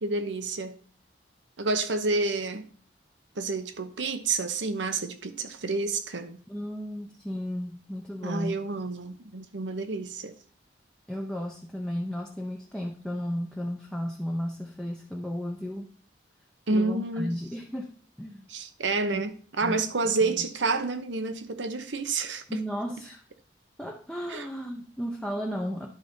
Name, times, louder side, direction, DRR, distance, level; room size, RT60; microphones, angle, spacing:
voice 1, 0.0-0.8 1.6-2.7 3.4-6.4 8.2-10.3 16.7-17.3 18.5-22.6 24.3-24.5, right 3 dB, 85° right, 0.9 m, -29 dB
voice 2, 6.5-8.6 11.1-15.9 16.7-17.9 18.2-18.5 19.1-19.2 19.6-19.8 20.2-20.4 22.5-23.2 23.8-25.9, equal, 5° left, 0.6 m, -34 dB
11.0 x 4.1 x 5.3 m
head